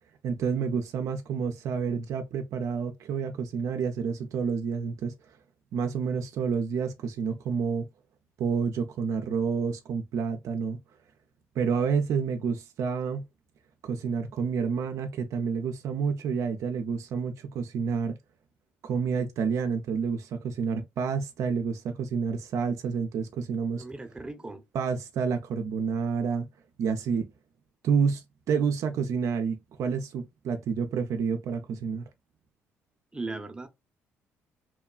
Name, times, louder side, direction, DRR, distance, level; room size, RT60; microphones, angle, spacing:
voice 1, 0.2-5.1 5.7-7.9 8.4-10.8 11.6-13.3 13.8-18.2 18.8-23.8 24.7-26.5 26.8-27.3 27.8-32.1, right 6 dB, 70° right, 0.4 m, -29 dB
voice 2, 23.8-24.6 33.1-33.7, right 3 dB, 15° right, 0.7 m, -37 dB
3.0 x 2.2 x 2.3 m
supercardioid pair, 60°, 6 cm